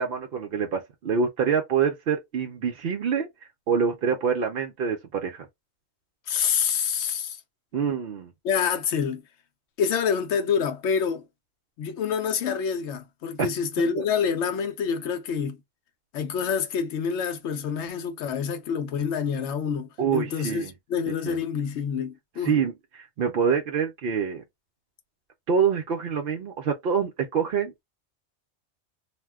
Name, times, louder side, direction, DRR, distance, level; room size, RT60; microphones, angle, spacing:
voice 1, 0.0-3.3 3.7-5.5 7.7-8.3 13.4-13.5 14.0-14.1 20.0-20.7 21.2-21.4 22.4-24.4 25.5-27.8, right 6 dB, 60° right, 0.7 m, -26 dB
voice 2, 6.3-7.4 8.4-9.2 9.8-11.2 11.8-15.6 16.1-22.5, left 7 dB, 80° left, 0.9 m, -27 dB
2.5 x 2.2 x 3.4 m
omnidirectional pair, 1.2 m